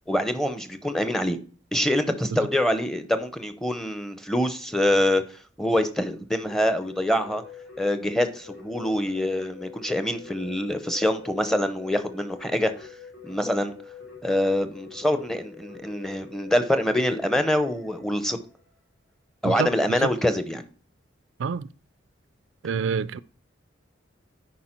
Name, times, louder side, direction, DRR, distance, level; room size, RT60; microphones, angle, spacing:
voice 1, 0.1-1.4 1.7-5.2 5.6-7.4 7.8-12.9 13.2-13.7 14.2-18.4 19.4-20.6, left 1 dB, ahead, 0.6 m, -25 dB
Keyboard (musical), 6.4-18.9, left 6 dB, 80° left, 4.9 m, -46 dB
voice 2, 19.4-20.0 21.4-21.7 22.6-23.2, right 6 dB, 75° right, 0.4 m, -27 dB
10.0 x 4.6 x 4.4 m
head